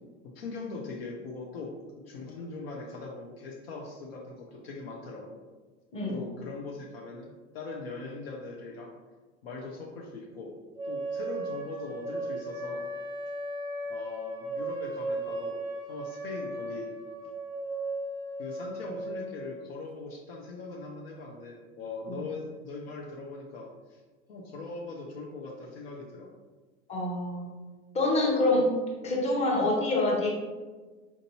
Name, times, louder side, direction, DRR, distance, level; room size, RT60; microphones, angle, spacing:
voice 1, 0.3-5.4 6.1-8.9 9.4-10.5 10.8-12.8 13.9-15.6 15.9-16.9 18.4-24.0 24.3-26.3, left 3 dB, 55° left, -1 dB, 0.6 m, -41 dB
sound 1, 10.8-19.7, right 1 dB, 10° right, 0.5 m, -36 dB
voice 2, 26.9-27.5 27.9-28.7 29.0-30.3, left 2 dB, 20° left, -2 dB, 0.9 m, -26 dB
4.4 x 2.6 x 2.7 m, 1.3 s
figure-of-eight pair, 80°, 35 cm